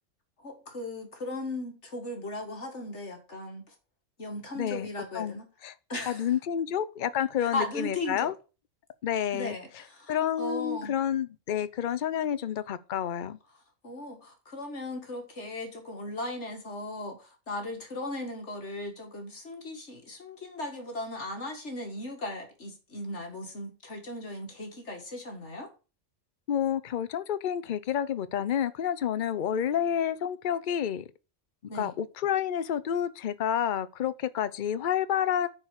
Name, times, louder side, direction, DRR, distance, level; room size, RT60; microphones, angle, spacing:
voice 1, 0.4-3.7 4.2-5.5 5.9-6.3 7.4-8.3 9.3-10.9 13.8-25.7 31.7-31.9, left 2 dB, 65° left, 2.3 m, -37 dB
voice 2, 4.5-4.9 5.1-5.7 6.1-8.3 9.0-9.5 10.1-13.4 26.5-31.0 31.7-35.5, left 9 dB, 50° left, 0.7 m, -29 dB
9.8 x 4.6 x 6.4 m
omnidirectional pair, 1.3 m